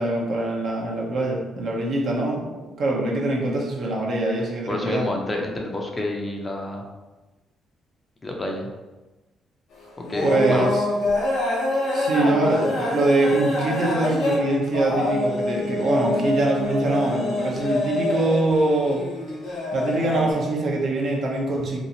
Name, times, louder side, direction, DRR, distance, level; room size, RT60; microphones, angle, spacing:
voice 1, 0.0-5.1 10.2-10.8 11.9-19.1 19.7-21.8, right 2 dB, 60° right, -1 dB, 0.6 m, -23 dB
voice 2, 4.7-6.8 8.2-8.7 10.0-10.7, left 1 dB, 25° left, 1 dB, 0.5 m, -29 dB
sound 1, 9.7-20.3, left 2 dB, 80° left, 0.8 m, -26 dB
2.8 x 2.4 x 2.7 m, 1.1 s
cardioid pair, 90°, 0 cm